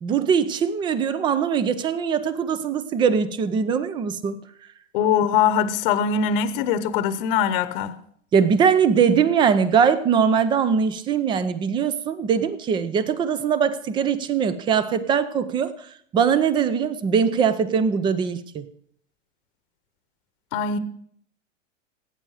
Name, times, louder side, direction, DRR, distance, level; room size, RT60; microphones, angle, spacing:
voice 1, 0.0-4.4 8.3-15.7 16.1-18.6, right 7 dB, 10° right, 0.5 m, -21 dB
voice 2, 4.9-7.9 20.5-20.8, left 7 dB, 45° left, 1.0 m, -22 dB
17.0 x 8.9 x 4.9 m
hypercardioid pair, 140°, 39 cm